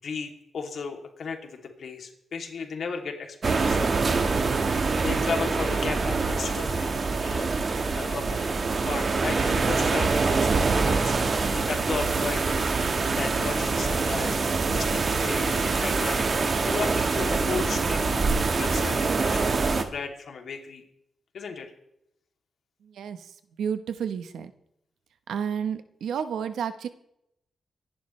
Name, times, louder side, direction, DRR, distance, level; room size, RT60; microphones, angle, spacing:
voice 1, 0.0-12.7 13.2-14.4 14.7-16.3 16.6-18.2 18.6-20.8 21.3-21.7, left 5 dB, 65° left, 2 dB, 2.7 m, -35 dB
sound 1, 3.4-19.8, right 4 dB, 45° right, 1.5 m, -25 dB
voice 2, 22.8-24.5 25.3-26.9, right 7 dB, 90° right, 10 dB, 1.0 m, -31 dB
24.5 x 11.0 x 3.2 m, 0.79 s
cardioid pair, 100°, 0 cm